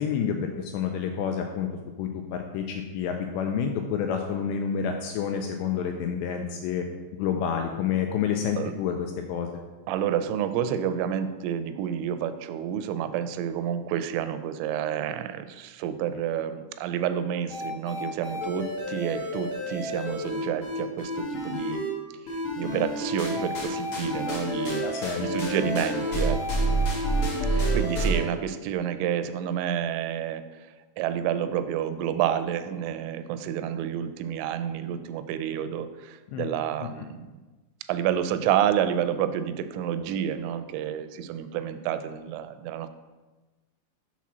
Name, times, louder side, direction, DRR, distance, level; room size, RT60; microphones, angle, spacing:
voice 1, 0.0-1.7 2.0-6.9 7.1-9.6 24.8-25.3 36.3-36.5, left 7 dB, 85° left, 4 dB, 2.5 m, -29 dB
voice 2, 9.9-21.8 22.3-26.6 27.5-30.7 31.0-37.3 37.9-42.9, right 9 dB, 85° right, 10 dB, 3.0 m, -29 dB
sound 1, 17.5-21.9 22.3-28.2, right 1 dB, 60° left, 1.4 m, -29 dB
7.1 x 4.4 x 6.1 m, 1.2 s
omnidirectional pair, 5.4 m